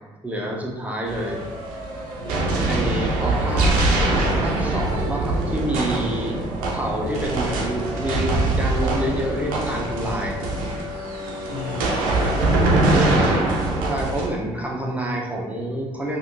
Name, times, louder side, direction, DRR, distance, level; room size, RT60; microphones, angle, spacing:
voice 1, 0.2-1.4 2.7-6.4 6.7-10.5 12.9-13.4 13.9-16.2, right 1 dB, 10° right, -2 dB, 0.8 m, -27 dB
sound 1, 1.0-14.3, right 2 dB, 80° right, 0.6 m, -23 dB
voice 2, 2.2-2.7 11.5-13.2, left 4 dB, 65° left, 3 dB, 0.4 m, -36 dB
3.4 x 2.4 x 2.6 m, 1.3 s
hypercardioid pair, 50°, 14 cm